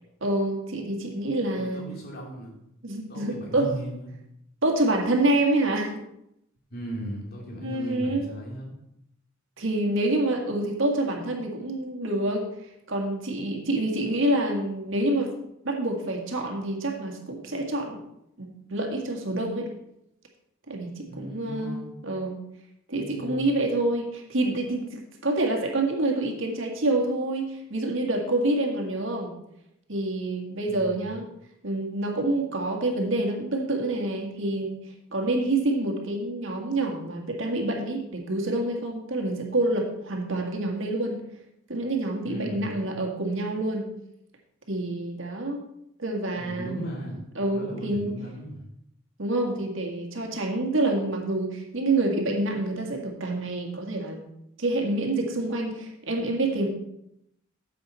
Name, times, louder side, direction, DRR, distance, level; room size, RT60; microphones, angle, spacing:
voice 1, 0.2-1.8 2.8-3.7 4.6-6.0 7.6-8.3 9.6-12.4 12.9-15.3 15.6-18.0 18.4-19.7 20.7-22.4 22.9-29.3 29.9-31.2 31.6-34.8 35.1-41.2 41.7-43.8 44.7-45.6 46.0-46.8 47.4-48.1 49.2-54.2 54.6-56.7, right 2 dB, 65° right, 1 dB, 1.8 m, -27 dB
voice 2, 1.5-2.6 3.1-4.1 6.7-8.7 21.1-21.9 22.9-23.5 30.7-31.2 42.2-42.9 46.4-48.6, right 1 dB, 45° left, -2 dB, 2.8 m, -37 dB
9.8 x 7.7 x 4.1 m, 0.80 s
head